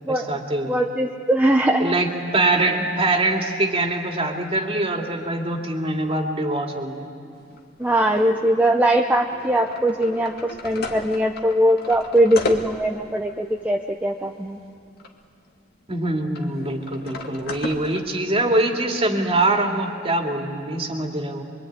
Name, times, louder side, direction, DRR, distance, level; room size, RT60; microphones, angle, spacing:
voice 1, 0.1-0.8 1.8-7.1 15.9-21.4, right 2 dB, 30° right, 2 dB, 2.7 m, -23 dB
voice 2, 0.7-2.0 7.8-14.6, right 1 dB, 10° right, 1 dB, 0.9 m, -21 dB
sound 1, 7.3-15.2 15.5-15.6 16.3-18.0, left 2 dB, 55° left, 2.2 m, -35 dB
25.0 x 24.0 x 9.6 m, 2.6 s
head